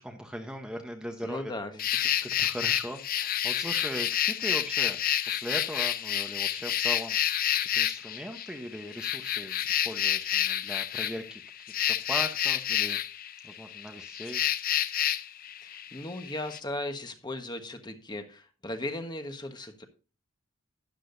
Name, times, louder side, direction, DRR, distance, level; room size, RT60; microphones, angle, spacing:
voice 1, 0.0-13.0 13.4-14.4, equal, 5° right, 3 dB, 0.9 m, -39 dB
voice 2, 1.2-2.3 15.6-19.9, left 1 dB, 20° left, 7 dB, 1.3 m, -37 dB
sound 1, 1.8-16.6, left 11 dB, 45° left, 0.5 m, -29 dB
12.5 x 9.9 x 2.6 m, 0.34 s
head